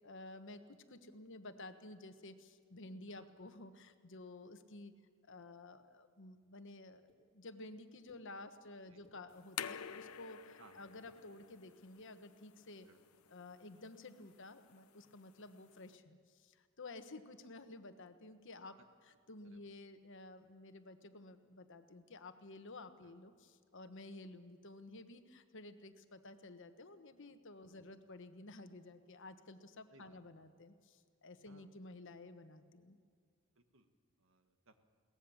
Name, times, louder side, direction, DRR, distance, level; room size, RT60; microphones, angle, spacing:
voice 1, 0.0-4.9 5.3-7.0 7.3-12.9 13.3-33.0, left 2 dB, 60° left, 9 dB, 1.3 m, -53 dB
sound 1, 7.1-7.2 8.1-8.2 8.8-9.2 9.8-10.2 10.9-11.2 11.9-12.1, left 1 dB, 5° left, 2.7 m, -68 dB
sound 2, 9.3-16.0, left 8 dB, 90° left, 0.7 m, -50 dB
voice 2, 33.5-33.9 34.2-34.8, right 3 dB, 65° right, 8 dB, 1.6 m, -65 dB
22.5 x 18.0 x 7.1 m, 2.1 s
head